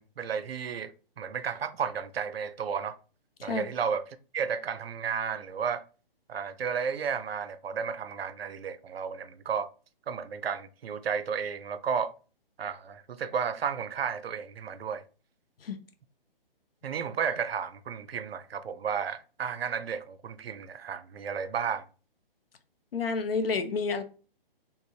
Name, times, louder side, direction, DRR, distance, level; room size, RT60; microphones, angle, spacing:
voice 1, 0.0-3.0 3.4-4.1 4.3-5.8 6.3-9.7 10.1-12.1 12.6-15.0 16.8-21.8, right 7 dB, 85° right, 0.5 m, -33 dB
voice 2, 22.9-24.0, left 4 dB, 75° left, 0.8 m, -29 dB
3.4 x 3.0 x 2.7 m
hypercardioid pair, 150°, 29 cm